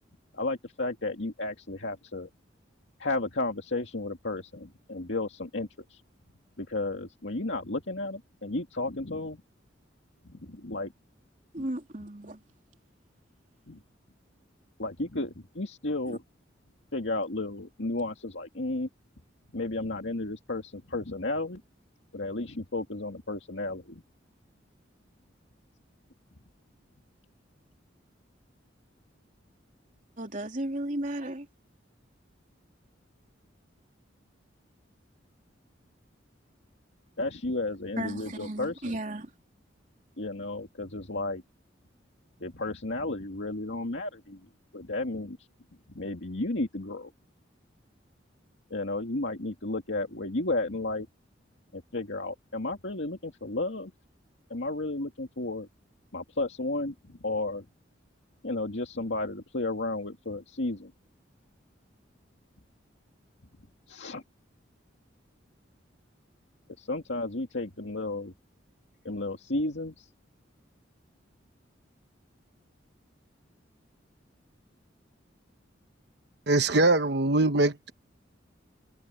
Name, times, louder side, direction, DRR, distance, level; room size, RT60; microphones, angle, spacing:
voice 1, 0.3-2.3 3.0-6.0 6.6-9.4 10.2-10.9 13.7-13.8 14.8-16.2 16.9-18.9 19.5-21.6 22.1-24.0 37.2-39.0 40.2-41.4 42.4-44.5 44.7-45.4 45.9-47.1 48.7-51.1 51.7-53.9 54.5-55.7 56.1-57.6 58.4-60.9 63.9-64.2 66.8-68.3 69.0-70.1, left 2 dB, 70° left, 2.1 m, -33 dB
voice 2, 11.5-12.4 16.1-16.2 30.2-31.5 38.0-39.3, right 1 dB, 40° right, 3.4 m, -34 dB
voice 3, 76.5-77.9, right 2 dB, 60° right, 1.1 m, -23 dB
head